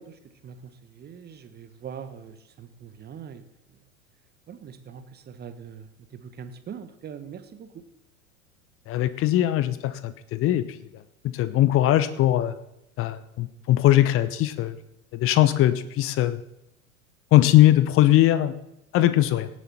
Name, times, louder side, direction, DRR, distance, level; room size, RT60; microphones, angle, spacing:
voice 1, 0.0-3.4 3.7-3.8 4.5-7.8, right 7 dB, 25° right, 9 dB, 1.3 m, -42 dB
voice 2, 8.9-10.6 11.2-12.5 13.0-14.8 15.1-16.4 17.3-18.5 18.9-19.5, left 14 dB, 30° left, 14 dB, 0.9 m, -20 dB
17.5 x 7.9 x 4.3 m, 0.82 s
figure-of-eight pair, 85°, 42 cm